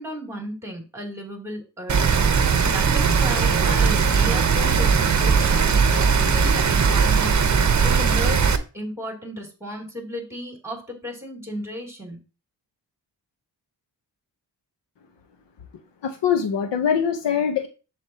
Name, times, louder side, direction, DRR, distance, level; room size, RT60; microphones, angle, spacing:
voice 1, 0.0-8.4 8.7-12.2, equal, 5° right, 3.0 m, -34 dB
Rain, 1.9-8.6, right 6 dB, 40° right, 0.9 m, -19 dB
voice 2, 16.0-17.7, left 7 dB, 75° left, 1.0 m, -23 dB
8.1 x 7.4 x 2.9 m
wide cardioid pair, 115°, 43 cm